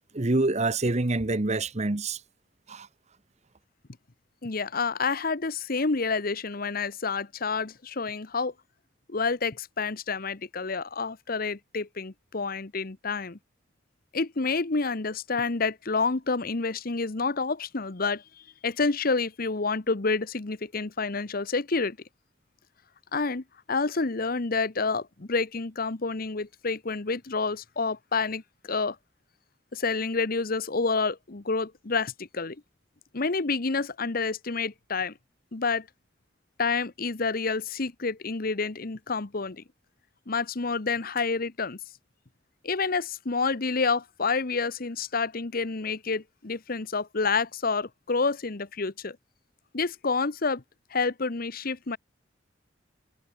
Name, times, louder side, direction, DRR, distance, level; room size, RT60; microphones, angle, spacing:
voice 1, 0.1-2.2 2.7-2.9, right 2 dB, 35° right, 1.0 m, -26 dB
voice 2, 4.4-8.5 9.1-13.4 14.1-18.2 18.6-22.0 23.1-29.0 29.7-32.6 33.1-35.1 35.5-35.9 36.6-39.6 40.3-41.8 42.6-49.2 49.7-50.6 50.9-52.0, left 4 dB, 50° left, 1.0 m, -28 dB
head